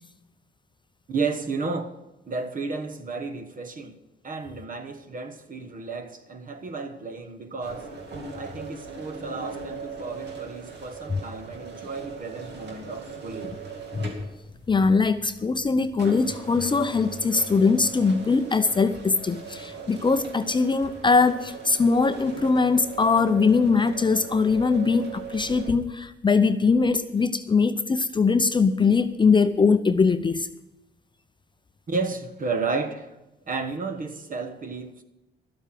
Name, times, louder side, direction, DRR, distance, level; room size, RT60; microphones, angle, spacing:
voice 1, 1.1-2.0 2.3-4.0 4.2-8.0 8.3-13.6 31.9-33.2 33.5-35.0, right 4 dB, 45° right, 1.2 m, -32 dB
sound 1, 7.6-25.7, right 4 dB, 60° right, 2.2 m, -40 dB
voice 2, 14.7-30.5, left 4 dB, 25° left, 0.6 m, -21 dB
12.5 x 8.1 x 7.6 m
cardioid pair, 90°, 20 cm